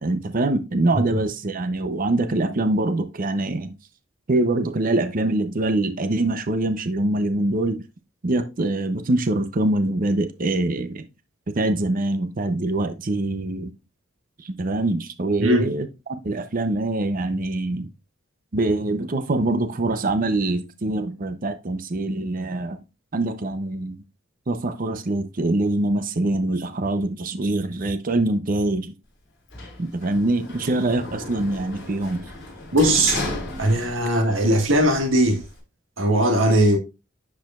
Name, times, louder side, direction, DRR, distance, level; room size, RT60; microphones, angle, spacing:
voice 1, 0.0-3.7 4.3-7.8 8.2-11.1 11.6-13.7 14.4-17.9 18.5-22.8 23.1-24.0 24.5-28.9 29.8-32.2, right 2 dB, 45° right, 0.6 m, -24 dB
Sliding door, 29.5-34.3 34.7-35.6, left 2 dB, 55° left, 3.9 m, -34 dB
voice 2, 32.7-33.2 33.6-35.4 36.0-36.8, right 1 dB, 75° right, 1.7 m, -19 dB
10.5 x 4.9 x 2.4 m
head